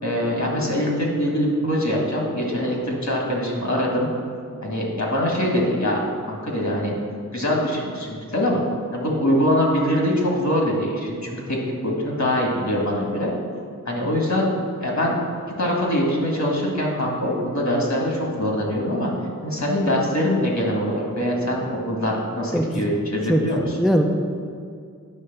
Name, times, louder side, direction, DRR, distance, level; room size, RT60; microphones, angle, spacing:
voice 1, 0.0-4.1 4.6-6.0 6.3-6.9 7.3-8.6 8.9-11.6 11.8-13.3 13.9-14.5 14.8-15.3 15.6-19.1 19.4-23.8, equal, 60° left, -2 dB, 1.9 m, -23 dB
voice 2, 22.5-23.0 23.3-24.1, equal, ahead, 3 dB, 0.5 m, -21 dB
9.4 x 3.3 x 6.7 m, 2.3 s
wide cardioid pair, 60°, 32 cm